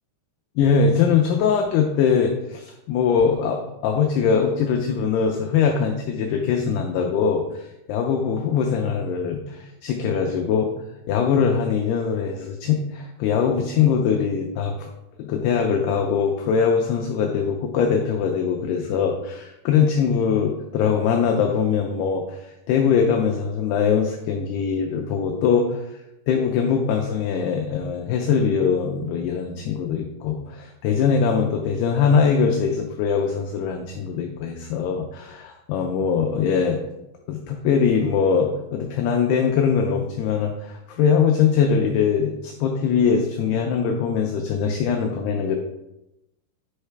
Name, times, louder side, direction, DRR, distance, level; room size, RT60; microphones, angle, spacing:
voice 1, 0.6-10.7 11.1-14.9 15.2-25.9 26.3-36.8 37.3-45.6, left 6 dB, 90° left, 2 dB, 2.3 m, -22 dB
9.8 x 5.6 x 3.3 m, 0.93 s
omnidirectional pair, 5.4 m